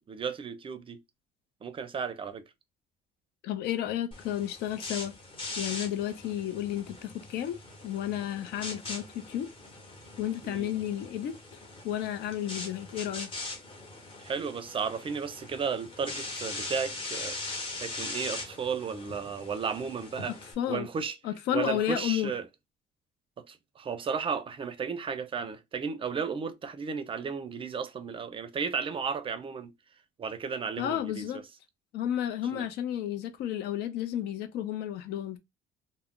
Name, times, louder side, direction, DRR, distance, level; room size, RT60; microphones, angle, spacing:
voice 1, 0.1-1.0 1.6-2.4 10.4-10.7 14.2-17.4 17.8-20.4 20.7-21.2 21.5-22.5 23.4-29.7 30.2-31.3 32.5-32.6, right 6 dB, 30° right, 0.4 m, -34 dB
voice 2, 3.4-5.1 5.6-7.6 7.8-9.5 10.2-11.3 11.8-13.3 20.6-20.9 21.2-22.3 30.8-31.4 31.9-35.4, left 11 dB, 80° left, 0.5 m, -32 dB
sound 1, 4.1-20.5, left 2 dB, 30° left, 1.0 m, -41 dB
2.3 x 2.0 x 3.6 m
cardioid pair, 110°, 17 cm